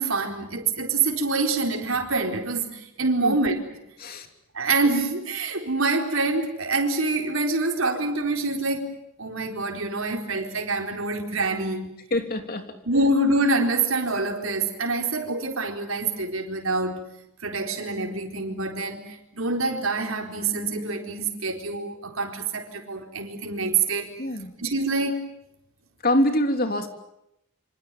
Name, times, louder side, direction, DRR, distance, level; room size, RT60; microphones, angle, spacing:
voice 1, 0.0-3.6 4.5-11.9 12.9-17.1 17.4-24.1 24.6-25.3, right 3 dB, 70° right, 4.3 m, -26 dB
voice 2, 12.1-12.8 24.2-24.5 26.0-26.9, left 1 dB, 45° left, 3.3 m, -25 dB
27.0 x 26.0 x 7.6 m
head